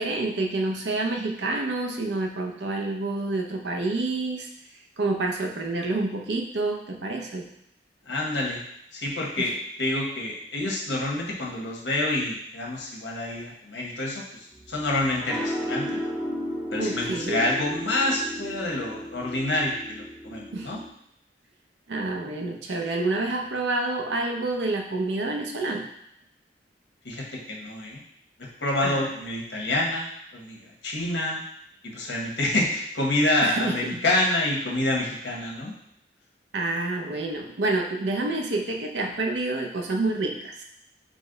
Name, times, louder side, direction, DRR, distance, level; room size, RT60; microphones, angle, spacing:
voice 1, 0.0-4.5 5.0-7.5 9.4-9.5 16.8-17.5 20.5-20.7 21.9-25.9 28.8-29.1 33.4-34.0 36.5-40.6, right 2 dB, 75° right, 2 dB, 0.6 m, -28 dB
voice 2, 8.1-8.6 8.9-9.5 9.8-16.0 16.7-20.8 27.0-28.0 28.6-30.6 30.8-31.4 31.9-35.7, left 1 dB, 85° left, -2 dB, 1.1 m, -27 dB
sound 1, 14.5-20.9, equal, 5° right, 0.5 m, -34 dB
5.0 x 2.1 x 3.8 m, 0.75 s
head